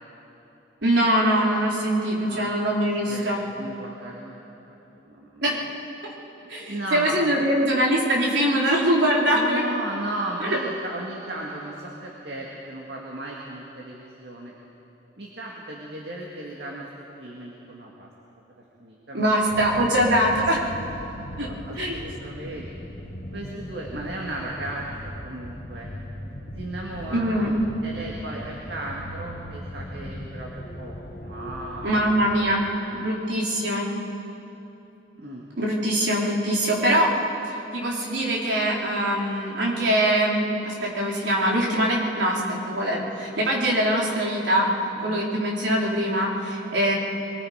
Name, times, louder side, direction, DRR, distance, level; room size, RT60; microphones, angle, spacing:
voice 1, 0.8-3.4 5.4-5.6 6.5-9.6 10.4-10.6 19.1-20.6 21.4-21.5 21.8-22.0 27.1-27.5 31.8-32.6 32.9-33.9 35.6-37.1 37.7-44.7 45.0-46.9, right 1 dB, 80° right, -4 dB, 4.0 m, -23 dB
voice 2, 2.2-2.5 3.1-4.4 4.7-5.5 6.7-7.2 9.3-14.5 15.2-18.1 18.8-19.4 19.8-20.1 20.9-21.0 21.5-22.7 23.3-25.9 26.5-27.5 27.8-33.0 35.2-35.5 44.9-45.3 45.9-46.1, right 1 dB, 65° right, -2 dB, 2.2 m, -36 dB
sound 1, 19.5-32.6, left 1 dB, 50° left, 1.4 m, -38 dB
23.0 x 23.0 x 5.1 m, 3.0 s
head